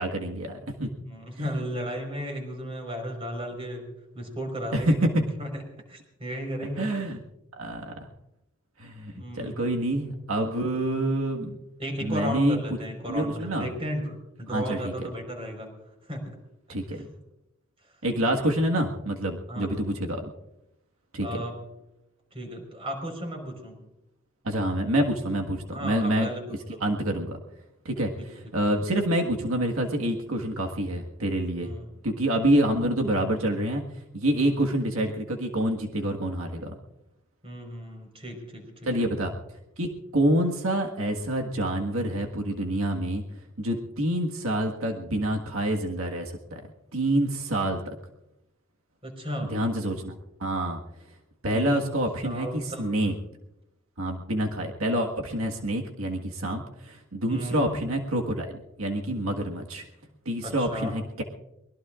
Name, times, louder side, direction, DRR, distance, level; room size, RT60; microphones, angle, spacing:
voice 1, 0.0-0.9 1.3-1.5 4.7-5.3 6.8-7.2 7.6-8.1 8.8-11.6 12.0-12.6 13.1-13.7 14.5-14.9 16.7-17.1 18.0-20.3 21.1-21.4 24.4-26.3 26.8-27.4 27.8-31.7 32.0-33.8 34.1-36.8 38.9-39.3 39.8-43.2 43.6-46.6 46.9-47.9 49.5-50.8 51.4-53.1 54.0-58.5 58.8-59.8 60.2-61.2, right 1 dB, 90° right, 2 dB, 1.7 m, -27 dB
voice 2, 1.1-5.6 5.9-6.9 9.1-9.7 11.8-15.7 16.1-16.2 19.5-19.7 21.2-21.5 22.3-23.7 25.7-26.4 26.7-26.8 28.2-28.3 31.6-31.8 34.3-34.5 37.4-38.7 49.0-49.5 51.5-51.9 52.2-52.8 57.2-57.7 60.4-60.9, equal, 30° right, 3 dB, 4.5 m, -34 dB
23.5 x 21.0 x 2.5 m, 0.89 s
head